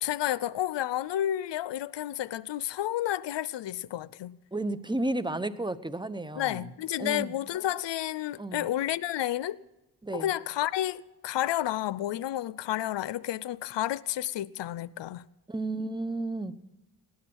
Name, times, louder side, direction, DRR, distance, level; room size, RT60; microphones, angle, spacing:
voice 1, 0.0-4.4 6.4-9.6 10.1-15.3, left 13 dB, 80° left, 0.6 m, -31 dB
voice 2, 4.5-6.7 7.0-7.3 8.4-8.7 10.0-10.3 15.5-16.5, right 2 dB, 10° right, 1.1 m, -32 dB
18.0 x 12.0 x 6.3 m
cardioid pair, 45°, 43 cm